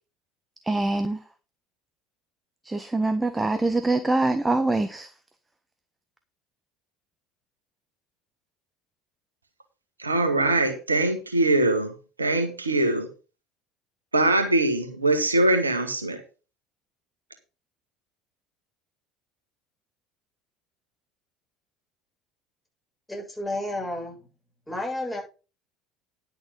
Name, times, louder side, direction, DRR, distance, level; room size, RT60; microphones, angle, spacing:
voice 1, 0.6-1.2 2.6-5.1, right 2 dB, 15° right, 1.3 m, -24 dB
voice 2, 10.0-11.9 12.2-13.1 14.1-16.2, right 2 dB, 90° right, 1.5 m, -22 dB
voice 3, 23.1-24.2 24.7-25.2, left 1 dB, 10° left, 7.7 m, -31 dB
11.0 x 6.7 x 5.4 m
figure-of-eight pair, 65°, 0 cm